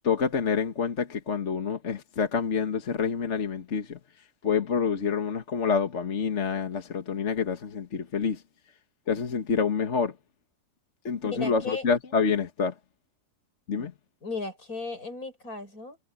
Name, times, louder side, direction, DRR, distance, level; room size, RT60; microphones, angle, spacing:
voice 1, 0.0-4.0 4.4-8.4 9.1-10.1 11.1-12.7 13.7-13.9, left 6 dB, 55° left, 1.8 m, -27 dB
voice 2, 11.3-11.8 13.7-13.9 14.2-16.0, left 3 dB, 85° left, 6.3 m, -36 dB
omnidirectional pair, 1.5 m